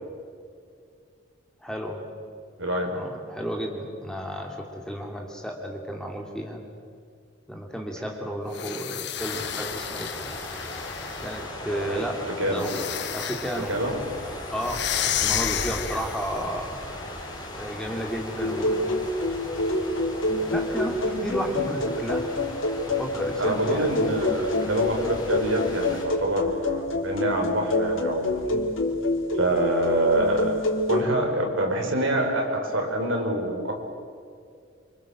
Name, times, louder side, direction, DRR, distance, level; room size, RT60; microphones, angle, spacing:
voice 1, 1.6-2.0 2.8-6.6 7.5-10.3 11.2-12.9 13.1-13.7 14.5-16.8 17.5-19.0 19.6-19.7 20.5-22.3 22.9-23.9, equal, 5° left, 1 dB, 2.9 m, -33 dB
sound 1, 8.5-11.5 12.5-13.7 14.6-16.3, left 10 dB, 55° left, 1.4 m, -31 dB
sound 2, 9.2-26.0, left 1 dB, 20° left, 6.2 m, -38 dB
voice 2, 11.7-12.0 12.4-12.7 13.7-14.0 23.4-28.6 29.3-33.8, right 1 dB, 75° right, 2 dB, 5.8 m, -26 dB
sound 3, 18.4-31.0, left 1 dB, 75° left, 3.8 m, -27 dB
28.0 x 27.0 x 7.6 m, 2.2 s
head